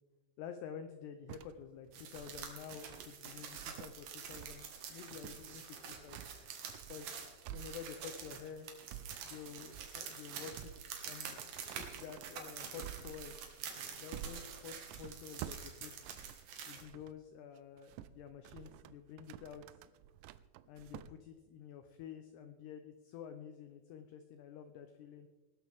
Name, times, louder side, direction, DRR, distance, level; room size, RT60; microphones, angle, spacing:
voice 1, 0.4-6.2 6.9-8.7 9.2-10.7 11.0-11.4 11.8-13.4 13.9-16.1 16.7-19.8 20.7-25.3, left 7 dB, 85° left, 8 dB, 2.3 m, -50 dB
sound 1, 1.3-17.2 17.6-21.1, right 12 dB, 85° right, 2.8 m, -51 dB
sound 2, 1.9-16.8, right 7 dB, 60° right, 3.1 m, -47 dB
20.5 x 12.5 x 3.5 m, 1.3 s
omnidirectional pair, 5.6 m